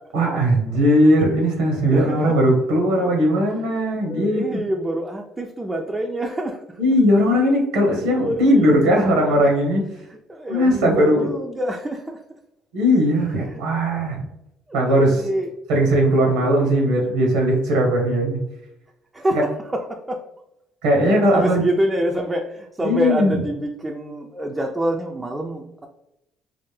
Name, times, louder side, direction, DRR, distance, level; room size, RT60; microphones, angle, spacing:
voice 1, 0.1-4.4 6.8-9.8 10.5-11.3 12.7-14.2 14.7-15.2 15.7-18.4 20.8-21.6 22.8-23.3, equal, 90° right, 0 dB, 0.7 m, -18 dB
voice 2, 1.9-2.4 3.7-3.8 4.1-6.8 7.8-9.5 10.0-12.2 13.4-13.6 14.7-15.5 16.2-16.9 19.1-20.2 21.1-25.9, right 1 dB, 15° right, 1 dB, 0.4 m, -27 dB
3.3 x 2.0 x 3.1 m, 0.86 s
supercardioid pair, 75°, 0 cm